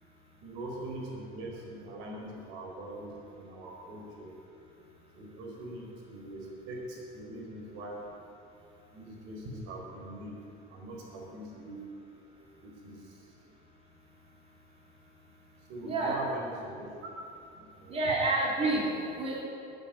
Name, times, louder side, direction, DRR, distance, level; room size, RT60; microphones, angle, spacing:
voice 1, 0.4-4.3 5.1-8.1 8.9-10.4 10.7-11.9 12.4-13.2 15.5-17.1 17.5-17.9, right 1 dB, 75° right, -1 dB, 4.1 m, -42 dB
voice 2, 15.3-16.2 17.9-19.4, right 2 dB, 30° right, -4 dB, 3.5 m, -30 dB
13.5 x 9.1 x 9.0 m, 2.7 s
cardioid pair, 140°, 20 cm